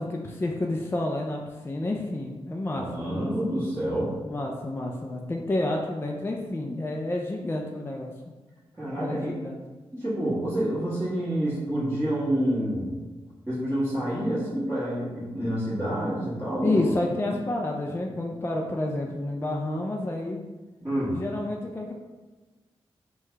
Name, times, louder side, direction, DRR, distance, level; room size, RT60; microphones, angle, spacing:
voice 1, 0.0-3.3 4.2-8.1 9.0-9.6 16.6-20.4 21.1-21.9, left 2 dB, 20° left, 1 dB, 0.3 m, -29 dB
voice 2, 2.7-4.1 8.8-9.3 9.9-13.0 13.5-16.8 20.8-21.2, right 1 dB, 20° right, -14 dB, 1.4 m, -28 dB
3.1 x 2.3 x 3.1 m, 1.2 s
cardioid pair, 45°, 11 cm